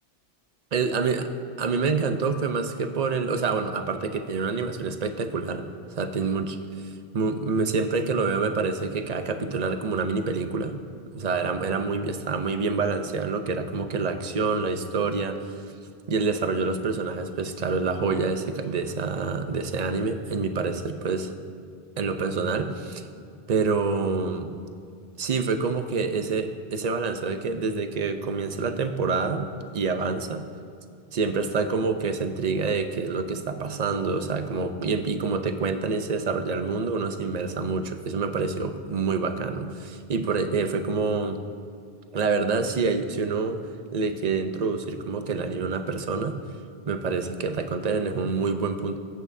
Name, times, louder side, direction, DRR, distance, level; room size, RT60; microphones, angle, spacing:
voice 1, 0.7-1.3 1.6-5.7 6.0-6.6 7.1-10.7 11.2-15.4 16.1-21.4 22.0-23.1 23.5-24.5 25.2-30.5 31.1-41.4 42.1-43.6 43.9-46.4 46.9-49.0, right 4 dB, 45° right, 7 dB, 0.7 m, -27 dB
21.5 x 8.7 x 2.7 m, 2.4 s
omnidirectional pair, 1.1 m